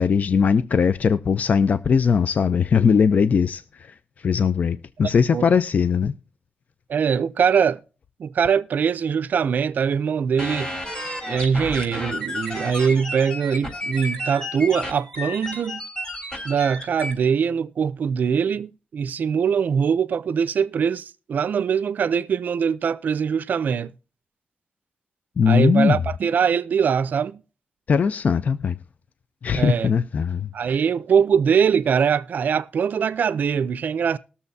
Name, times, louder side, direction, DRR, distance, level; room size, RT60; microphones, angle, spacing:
voice 1, 0.0-6.1 25.4-26.0 27.9-28.8 29.4-30.5, left 6 dB, 55° left, 0.5 m, -20 dB
voice 2, 6.9-7.8 8.2-10.7 11.3-15.8 16.4-23.9 25.5-27.4 29.5-29.9 30.5-34.2, right 7 dB, 70° right, 0.5 m, -22 dB
sound 1, 10.4-17.1, left 1 dB, 30° left, 3.9 m, -32 dB
20.5 x 7.0 x 2.7 m
wide cardioid pair, 110°, 3 cm